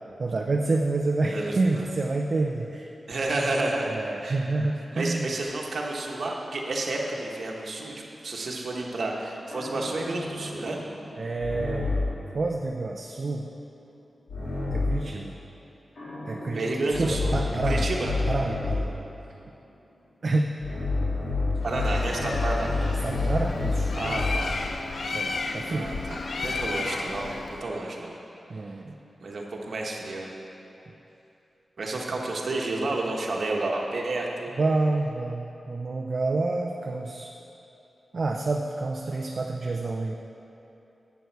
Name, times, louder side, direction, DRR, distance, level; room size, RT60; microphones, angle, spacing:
voice 1, 0.2-2.9 3.9-5.3 11.2-11.9 12.3-13.5 14.7-15.3 16.3-16.6 17.0-17.9 18.3-18.9 20.2-20.5 23.0-24.0 25.1-25.9 28.5-29.0 34.5-37.3 38.1-40.1, right 3 dB, 45° right, 1 dB, 0.5 m, -28 dB
voice 2, 1.3-1.9 3.1-3.9 4.2-4.4 4.9-7.9 8.2-10.8 16.5-17.4 17.6-18.1 21.6-22.8 23.9-24.6 25.7-28.2 29.2-30.4 31.8-34.5, right 2 dB, 60° right, -1 dB, 1.2 m, -30 dB
sound 1, 9.5-12.2 14.3-15.1 16.0-18.9 20.6-24.5, left 3 dB, 80° left, 2.6 m, -29 dB
Bird, 21.7-27.7, left 3 dB, 55° left, 0.5 m, -33 dB
11.0 x 8.2 x 4.6 m, 2.9 s
wide cardioid pair, 150°, 0 cm